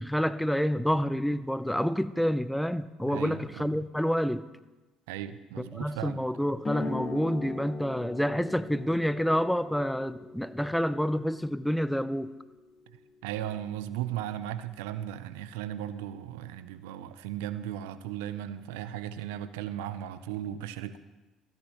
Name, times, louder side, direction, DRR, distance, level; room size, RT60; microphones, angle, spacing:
voice 1, 0.0-4.5 5.6-12.3, equal, 5° left, 0.4 m, -28 dB
voice 2, 3.0-3.7 5.1-6.2 13.2-21.0, right 11 dB, 80° right, 0.4 m, -36 dB
sound 1, 6.6-13.8, left 3 dB, 35° left, 2.4 m, -41 dB
13.5 x 10.5 x 3.0 m
hypercardioid pair, 65°, 0 cm